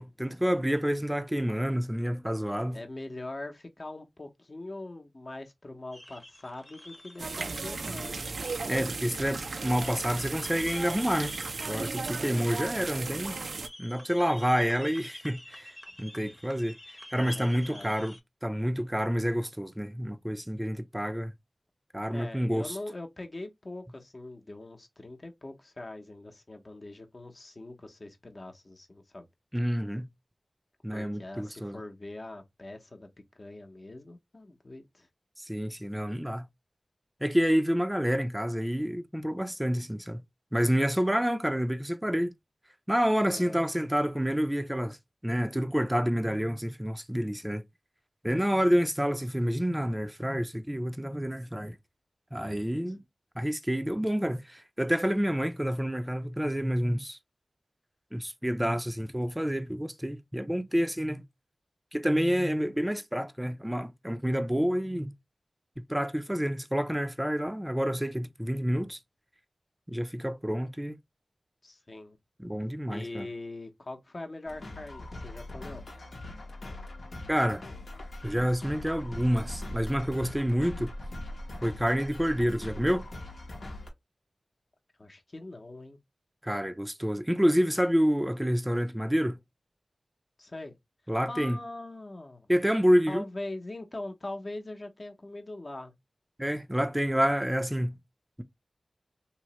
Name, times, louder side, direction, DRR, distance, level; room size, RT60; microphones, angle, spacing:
voice 1, 0.0-2.8 8.7-11.3 11.7-13.4 13.8-15.7 16.0-16.7 17.1-18.1 18.4-21.3 21.9-22.8 29.5-30.1 30.8-31.8 35.4-36.5 37.2-40.2 40.5-42.3 42.9-45.0 45.2-47.6 48.2-51.8 52.3-53.0 53.4-57.2 58.1-61.2 61.9-65.1 65.9-69.0 69.9-71.0 72.4-73.3 77.3-77.6 78.2-80.9 81.6-83.1 86.4-89.4 91.1-91.6 92.5-93.3 96.4-98.0, equal, 10° right, 0.4 m, -28 dB
voice 2, 2.7-8.3 12.1-12.4 16.2-16.4 17.1-18.0 22.1-29.3 30.9-33.1 33.4-35.1 43.3-43.6 71.6-72.2 72.9-75.8 85.0-86.0 90.4-90.8 91.3-92.5 93.1-95.9, left 2 dB, 50° left, 0.7 m, -42 dB
sound 1, 5.9-18.2, left 1 dB, 15° left, 0.7 m, -48 dB
sound 2, 7.2-13.7, right 4 dB, 85° right, 0.3 m, -35 dB
sound 3, 74.5-83.9, left 1 dB, 85° left, 0.8 m, -41 dB
3.0 x 2.0 x 2.8 m
cardioid pair, 40°, 0 cm